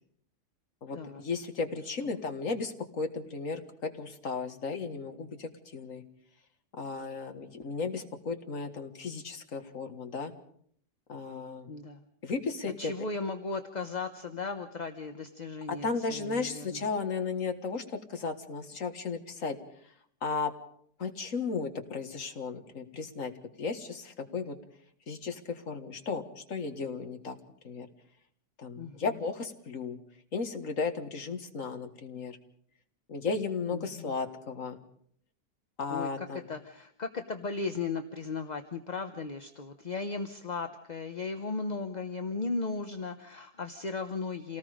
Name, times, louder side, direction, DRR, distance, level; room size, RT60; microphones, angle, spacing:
voice 1, 0.8-6.0 6.8-10.3 11.1-11.7 12.2-12.9 15.8-17.8 18.1-19.6 20.2-20.5 21.0-23.3 23.6-24.6 25.1-27.4 27.6-27.9 28.6-30.0 30.3-32.4 33.1-34.8 35.8-36.5, left 4 dB, 55° left, 7 dB, 2.0 m, -35 dB
voice 2, 11.7-12.0 12.8-16.9 28.8-29.2 33.7-34.2 35.9-44.6, left 4 dB, 30° left, 6 dB, 0.9 m, -36 dB
28.0 x 18.5 x 5.1 m, 0.63 s
omnidirectional pair, 1.7 m